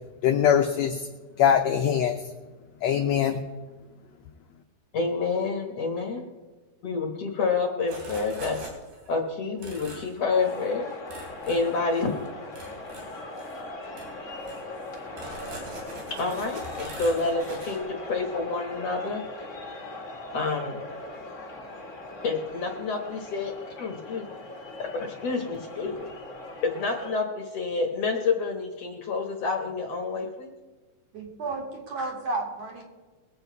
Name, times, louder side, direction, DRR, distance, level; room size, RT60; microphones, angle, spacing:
voice 1, 0.2-1.1 1.4-2.2 2.8-3.4, left 8 dB, 80° left, 5 dB, 1.5 m, -22 dB
voice 2, 4.9-6.3 6.8-8.6 9.1-10.9 11.5-12.2 16.2-19.2 20.3-20.8 22.2-23.5 23.8-24.3 24.8-26.1 26.6-30.5, left 4 dB, 60° left, 2 dB, 2.0 m, -28 dB
sound 1, 7.9-9.1 9.6-10.1 10.4-10.7 11.1-12.2 12.5-13.6 13.9-14.1 14.4-17.8, right 1 dB, 80° right, 5.1 m, -42 dB
sound 2, 10.3-27.1, left 2 dB, 30° left, 1.6 m, -40 dB
voice 3, 31.1-32.8, right 3 dB, 50° right, 0 dB, 3.2 m, -32 dB
22.5 x 8.1 x 4.6 m, 1.3 s
omnidirectional pair, 3.9 m